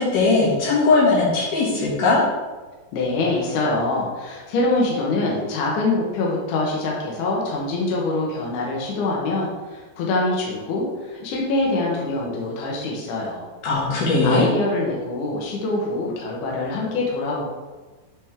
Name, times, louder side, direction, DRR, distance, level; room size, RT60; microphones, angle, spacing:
voice 1, 0.0-2.2 13.6-14.5, left 3 dB, 60° left, -6 dB, 2.7 m, -19 dB
voice 2, 2.9-13.4 14.2-17.4, left 2 dB, 85° left, -2 dB, 1.8 m, -24 dB
8.3 x 3.5 x 3.3 m, 1.3 s
omnidirectional pair, 5.0 m